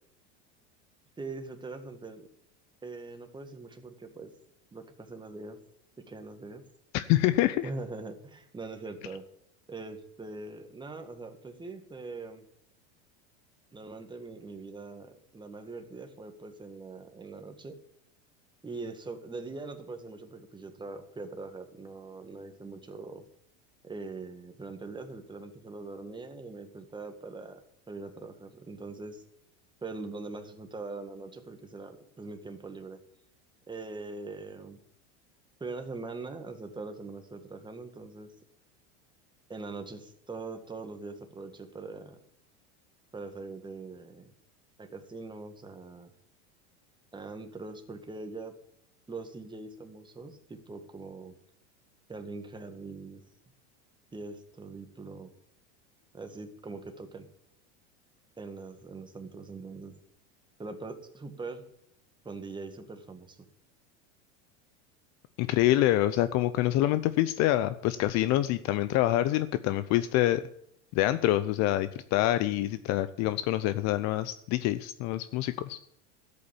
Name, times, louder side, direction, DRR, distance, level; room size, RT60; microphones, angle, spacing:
voice 1, 1.2-2.3 2.8-4.3 4.7-5.6 6.0-6.6 7.6-9.2 9.7-12.4 13.7-17.8 18.6-23.3 23.8-27.6 27.9-29.2 29.8-33.0 33.7-34.8 35.6-38.3 39.5-42.2 43.1-44.3 44.8-46.1 47.1-48.5 49.1-51.3 52.1-53.2 54.1-55.3 56.1-57.3 58.4-60.0 60.6-61.6 62.2-63.5, right 3 dB, 15° right, 6 dB, 1.9 m, -42 dB
voice 2, 6.9-7.7 65.4-70.5 70.9-75.8, left 14 dB, 50° left, 14 dB, 0.7 m, -26 dB
12.5 x 8.5 x 7.1 m, 0.72 s
supercardioid pair, 120°, 35 cm